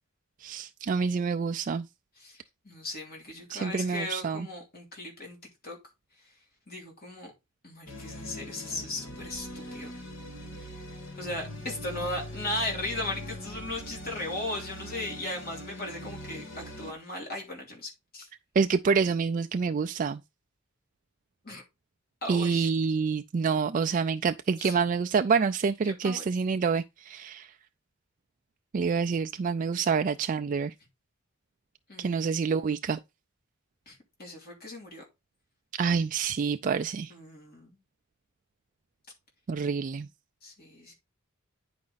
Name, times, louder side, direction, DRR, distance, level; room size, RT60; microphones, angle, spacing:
voice 1, 0.4-1.8 3.5-4.5 18.6-20.2 22.3-27.5 28.7-30.7 32.0-33.0 35.8-37.1 39.5-40.1, right 5 dB, 40° right, 0.3 m, -27 dB
voice 2, 2.2-5.4 5.6-5.8 6.7-7.3 7.6-9.9 10.6-10.7 11.2-18.3 21.4-21.6 22.2-22.7 24.6-24.8 26.0-26.2 31.9-32.3 33.9-35.0 37.1-37.7 40.4-40.9, left 2 dB, 50° left, 3.1 m, -37 dB
sound 1, 7.9-16.9, left 1 dB, 65° left, 1.8 m, -41 dB
9.6 x 5.1 x 4.0 m
head